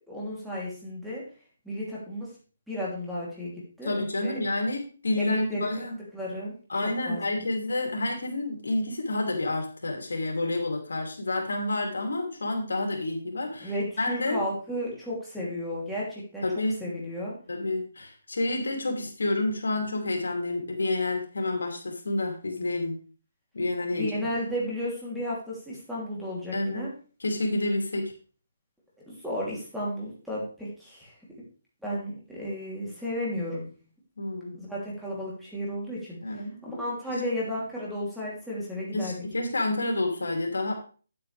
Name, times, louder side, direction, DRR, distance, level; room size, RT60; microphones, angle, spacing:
voice 1, 0.1-1.2 1.6-2.3 2.7-3.5 3.8-4.4 5.2-5.9 6.1-6.5 7.1-7.4 13.6-16.5 16.8-17.3 23.9-26.9 29.1-31.1 31.8-33.7 34.5-39.2, equal, ahead, -7 dB, 3.0 m, -33 dB
voice 2, 3.8-6.0 6.7-13.7 14.0-14.4 16.4-16.9 17.5-23.0 23.5-24.1 26.5-26.9 27.2-28.1 34.2-34.5 36.2-36.8 37.1-37.2 38.9-40.7, left 2 dB, 85° left, 2 dB, 2.9 m, -29 dB
9.2 x 8.6 x 3.4 m, 0.38 s
hypercardioid pair, 155°, 0 cm